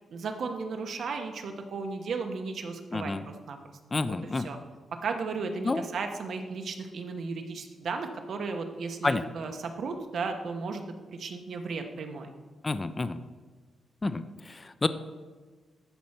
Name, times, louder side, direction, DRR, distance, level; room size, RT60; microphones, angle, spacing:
voice 1, 0.1-3.8 4.1-4.6 5.0-10.8 11.1-12.3, right 4 dB, 55° right, 5 dB, 1.0 m, -35 dB
voice 2, 2.9-3.2 3.9-4.5 5.6-5.8 9.0-9.3 12.6-13.2 14.0-14.9, left 3 dB, 20° left, 12 dB, 0.3 m, -29 dB
12.5 x 4.3 x 5.8 m, 1.4 s
wide cardioid pair, 160°, 0 cm